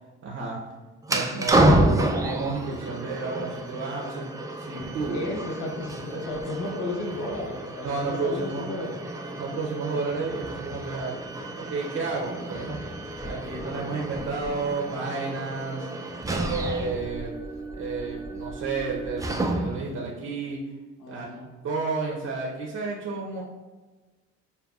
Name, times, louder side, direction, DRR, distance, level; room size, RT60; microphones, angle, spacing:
voice 1, 0.2-0.6 1.1-4.2 4.6-5.2 6.1-6.2 7.8-8.7 9.4-11.2 11.6-12.8 13.2-15.9 16.3-17.3 17.8-20.6 21.1-21.2 21.6-23.4, right 4 dB, 55° right, -2 dB, 0.8 m, -31 dB
sound 1, 1.0-19.9, right 1 dB, 10° right, 0.3 m, -29 dB
voice 2, 5.1-9.0 21.0-21.5, left 1 dB, 80° left, -1 dB, 0.9 m, -33 dB
6.7 x 2.2 x 2.3 m, 1.2 s
cardioid pair, 90°, 30 cm